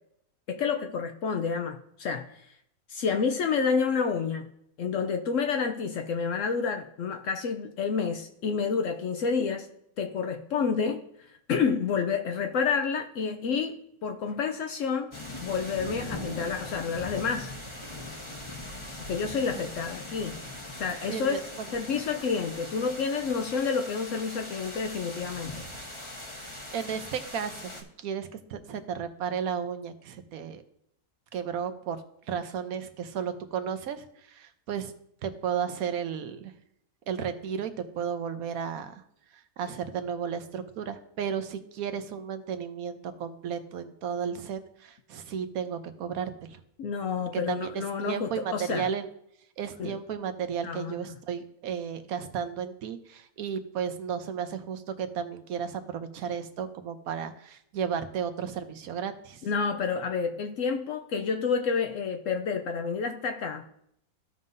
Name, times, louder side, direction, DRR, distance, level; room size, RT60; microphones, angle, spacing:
voice 1, 0.5-2.5 2.9-4.5 4.8-9.7 10.0-15.1 15.4-17.5 19.1-20.4 20.8-21.5 21.7-25.6 46.8-48.9 49.8-50.0 50.6-51.2 59.4-63.6, left 5 dB, 65° left, 0.9 m, -29 dB
sound 1, 15.1-27.8, left 1 dB, 25° left, 1.0 m, -40 dB
voice 2, 21.0-21.7 26.7-30.6 31.3-32.0 32.3-34.9 35.2-36.5 37.1-38.9 39.6-46.6 47.3-49.1 49.6-59.4, right 7 dB, 75° right, 1.2 m, -33 dB
15.0 x 5.5 x 2.6 m
omnidirectional pair, 1.5 m